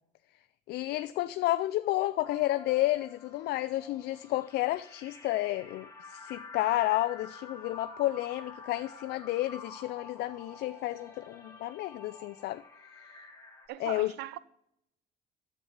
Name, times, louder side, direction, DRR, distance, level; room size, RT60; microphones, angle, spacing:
voice 1, 0.7-12.6 13.8-14.1, left 16 dB, 70° left, 0.4 m, -31 dB
sound 1, 2.2-13.7, left 4 dB, 15° left, 2.2 m, -48 dB
voice 2, 13.7-14.4, right 14 dB, 75° right, 0.6 m, -40 dB
10.0 x 7.4 x 5.6 m
cardioid pair, 110°, 17 cm